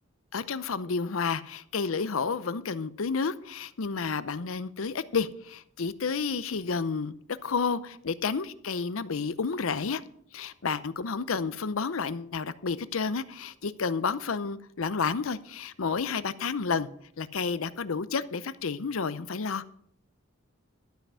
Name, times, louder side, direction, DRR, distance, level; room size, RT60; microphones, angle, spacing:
voice 1, 0.3-7.1 7.4-10.0 10.3-16.9 17.2-19.6, left 5 dB, 75° left, 15 dB, 0.7 m, -30 dB
12.5 x 5.8 x 8.2 m, 0.65 s
head